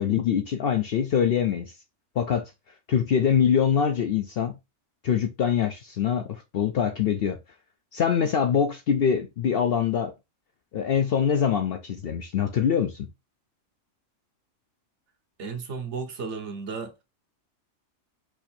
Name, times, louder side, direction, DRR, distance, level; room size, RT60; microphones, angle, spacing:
voice 1, 0.0-1.7 2.2-2.5 2.9-4.6 5.0-7.4 7.9-10.1 10.7-13.1, left 8 dB, 60° left, 0.6 m, -24 dB
voice 2, 15.4-16.9, right 5 dB, 60° right, 1.1 m, -34 dB
4.6 x 2.6 x 4.2 m
omnidirectional pair, 1.4 m